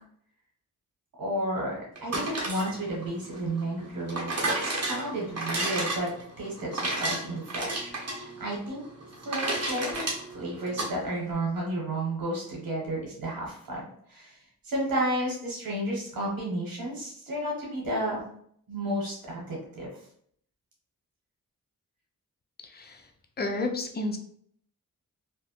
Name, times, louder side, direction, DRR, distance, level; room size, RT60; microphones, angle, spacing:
voice 1, 1.2-6.1 6.4-7.9 8.2-8.8 9.2-10.0 10.3-13.8 14.1-14.4 14.6-18.2 18.7-19.9, right 1 dB, 75° right, -3 dB, 1.0 m, -32 dB
sound 1, 2.0-10.9, right 2 dB, 45° right, 0.9 m, -32 dB
voice 2, 22.7-23.0 23.4-24.2, left 2 dB, 30° left, 4 dB, 0.4 m, -31 dB
2.3 x 2.0 x 2.8 m, 0.65 s
cardioid pair, 50°, 35 cm